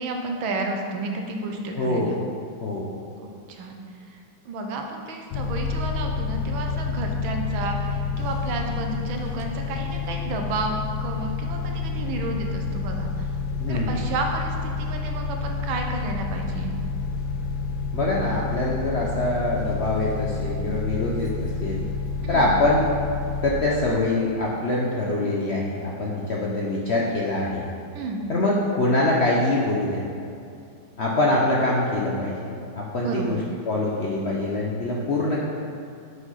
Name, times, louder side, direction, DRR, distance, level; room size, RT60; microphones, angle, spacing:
voice 1, 0.0-2.2 3.2-3.8 4.1-4.2 4.4-13.3 13.7-16.7 22.2-22.6 27.9-28.3 33.0-33.5, right 3 dB, 90° right, 3 dB, 1.6 m, -32 dB
voice 2, 1.8-2.2 2.6-2.9 13.6-14.0 17.9-21.3 21.6-21.8 22.3-22.8 23.4-27.6 28.3-30.0 31.0-32.3 32.8-35.4, left 2 dB, 60° left, -4 dB, 0.7 m, -24 dB
sound 1, 5.3-23.5, left 4 dB, 90° left, 1.4 m, -29 dB
6.3 x 5.4 x 5.6 m, 2.5 s
omnidirectional pair, 2.1 m